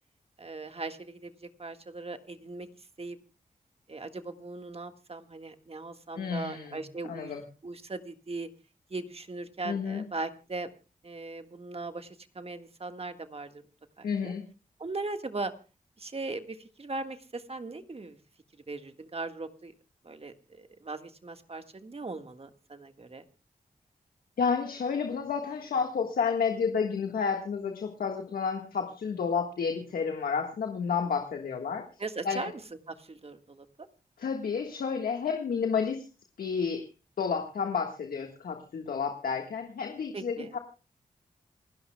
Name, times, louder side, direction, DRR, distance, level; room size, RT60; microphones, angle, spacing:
voice 1, 0.4-2.7 3.0-3.2 3.9-7.3 7.6-8.5 8.9-10.7 11.0-13.6 14.0-14.3 14.8-15.5 16.0-18.2 18.7-19.7 20.0-23.2 32.0-32.5 32.9-33.7 40.1-40.6, right 3 dB, 45° right, 8 dB, 1.6 m, -39 dB
voice 2, 6.2-6.8 7.1-7.4 9.6-10.0 14.0-14.4 24.4-31.8 32.2-32.5 34.2-36.1 36.4-36.8 37.2-40.6, left 6 dB, 90° left, 4 dB, 1.6 m, -30 dB
28.5 x 11.0 x 2.3 m, 0.33 s
cardioid pair, 50°, 15 cm